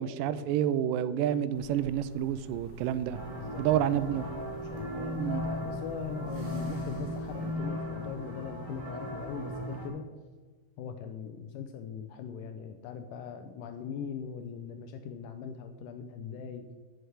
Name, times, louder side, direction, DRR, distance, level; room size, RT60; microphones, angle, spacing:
voice 1, 0.0-3.2 3.6-4.3 5.2-5.4, right 10 dB, 85° right, 15 dB, 2.1 m, -29 dB
sound 1, 1.5-7.5, equal, 50° left, 1.6 m, -51 dB
sound 2, 3.1-9.9, equal, 10° right, 1.9 m, -37 dB
voice 2, 3.4-4.0 4.6-10.1 10.8-16.7, left 7 dB, 80° left, 8 dB, 2.1 m, -40 dB
sound 3, 6.2-7.8, left 1 dB, 20° left, 2.0 m, -52 dB
7.8 x 6.6 x 7.9 m, 1.4 s
omnidirectional pair, 3.9 m